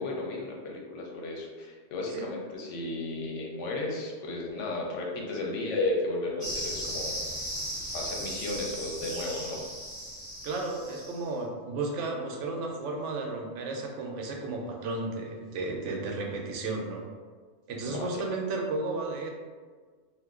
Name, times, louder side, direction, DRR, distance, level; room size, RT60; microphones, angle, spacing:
voice 1, 0.0-7.1 7.9-9.6 17.8-18.3, left 2 dB, 85° left, 0 dB, 1.0 m, -34 dB
sound 1, 6.4-11.2, equal, 20° right, 1.0 m, -36 dB
voice 2, 10.4-17.1 17.7-19.3, right 3 dB, 90° right, 1 dB, 0.9 m, -33 dB
2.5 x 2.2 x 3.5 m, 1.5 s
omnidirectional pair, 1.2 m